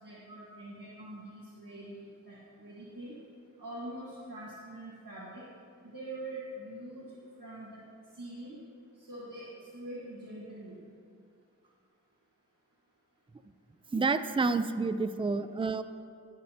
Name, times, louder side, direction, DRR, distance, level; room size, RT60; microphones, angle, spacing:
voice 1, 0.0-3.1 3.6-5.4 5.8-7.0 7.4-7.8 8.2-8.6 9.0-10.8, right 1 dB, 80° right, -7 dB, 1.6 m, -44 dB
voice 2, 13.9-15.8, right 4 dB, 15° right, 11 dB, 0.4 m, -29 dB
17.5 x 6.5 x 2.8 m, 2.3 s
wide cardioid pair, 40°, 33 cm